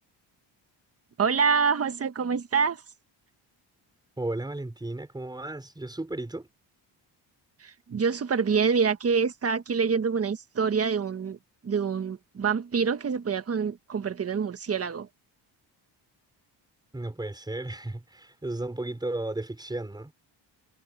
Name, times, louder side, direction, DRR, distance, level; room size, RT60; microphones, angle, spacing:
voice 1, 1.2-2.8 7.6-11.4 11.6-15.1, right 5 dB, 35° right, 1.4 m, -26 dB
voice 2, 4.2-6.5 16.9-20.1, right 2 dB, 10° right, 5.1 m, -34 dB
cardioid pair, 140°, 44 cm